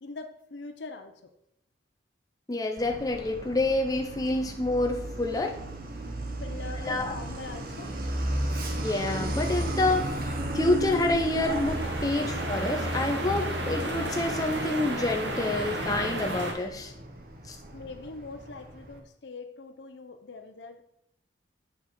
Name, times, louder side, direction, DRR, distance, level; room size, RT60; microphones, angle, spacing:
voice 1, 0.0-1.3 6.4-7.9 12.1-12.3 17.7-20.8, left 3 dB, 65° left, 8 dB, 0.7 m, -42 dB
voice 2, 2.5-5.6 6.8-7.1 8.7-16.9 17.5-17.6, left 2 dB, 20° left, 3 dB, 0.5 m, -28 dB
Truck, 2.8-19.0, right 1 dB, 50° right, 0.9 m, -35 dB
sound 1, 11.2-16.5, right 1 dB, 65° right, 1.2 m, -33 dB
8.1 x 4.9 x 4.3 m, 0.76 s
head